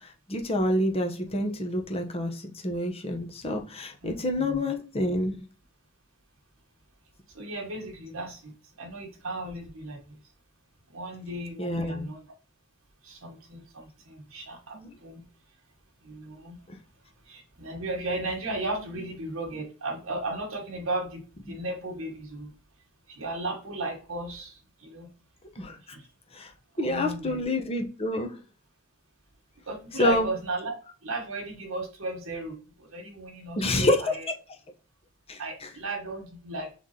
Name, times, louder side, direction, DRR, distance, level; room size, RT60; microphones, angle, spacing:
voice 1, 0.3-5.4 11.6-12.1 14.7-14.9 25.6-25.7 26.3-26.5 26.8-28.3 30.0-30.3 33.6-34.0 35.3-35.4, left 1 dB, 30° left, 4 dB, 0.9 m, -27 dB
voice 2, 4.0-4.6 7.3-10.2 10.9-12.3 13.0-15.3 16.0-16.6 17.2-22.5 23.1-25.1 25.8-26.1 26.7-27.5 29.7-30.7 31.0-34.3 35.4-36.7, right 2 dB, 85° right, 1 dB, 1.3 m, -35 dB
3.8 x 3.3 x 4.2 m, 0.37 s
head